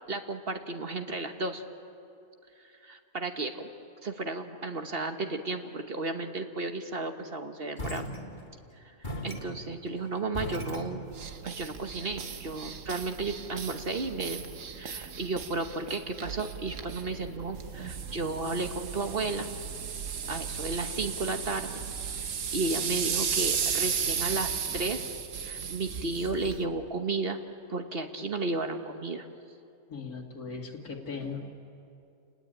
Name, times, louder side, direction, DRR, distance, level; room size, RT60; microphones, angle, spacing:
voice 1, 0.1-1.6 2.6-3.7 4.0-8.1 9.0-11.0 11.4-19.5 20.3-21.8 22.2-25.0 25.4-27.4 27.7-29.3, right 3 dB, 40° right, 6 dB, 1.4 m, -33 dB
sound 1, 7.8-8.7 9.0-11.4, equal, 30° left, 2.3 m, -38 dB
sound 2, 11.1-26.6, right 7 dB, 55° right, 1.4 m, -35 dB
voice 2, 29.9-31.5, left 4 dB, 70° left, 2 dB, 2.7 m, -38 dB
30.0 x 19.5 x 8.9 m, 2.7 s
omnidirectional pair, 1.6 m